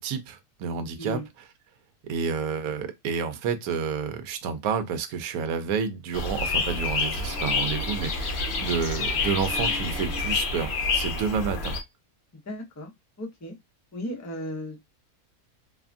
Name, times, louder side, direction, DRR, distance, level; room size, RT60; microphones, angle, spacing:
voice 1, 0.0-1.5 2.0-11.8, right 6 dB, 75° right, 1.0 m, -30 dB
sound 1, 6.1-11.8, left 3 dB, 60° left, 0.7 m, -28 dB
voice 2, 12.5-12.9 13.2-13.5 13.9-14.8, left 1 dB, 25° left, 0.3 m, -35 dB
2.8 x 2.3 x 2.4 m
omnidirectional pair, 1.6 m